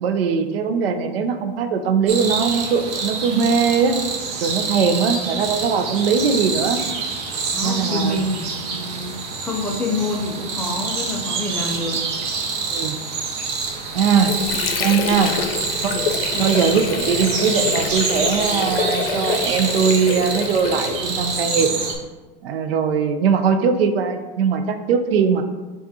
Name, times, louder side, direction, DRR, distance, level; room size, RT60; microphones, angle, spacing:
voice 1, 0.0-4.0 4.4-6.8 7.6-8.2 12.7-13.0 13.9-14.4 14.8-15.3 15.8-16.0 16.4-21.8 22.4-25.4, right 6 dB, 80° right, 8 dB, 0.6 m, -20 dB
sound 1, 2.1-21.9, right 4 dB, 40° right, 0.8 m, -26 dB
voice 2, 7.5-9.2 9.4-12.0 16.3-16.5, left 1 dB, 5° left, -2 dB, 0.4 m, -27 dB
Water / Sink (filling or washing), 13.7-21.4, left 6 dB, 85° left, 0.6 m, -27 dB
7.3 x 2.5 x 2.7 m, 1.2 s
hypercardioid pair, 130°, 29 cm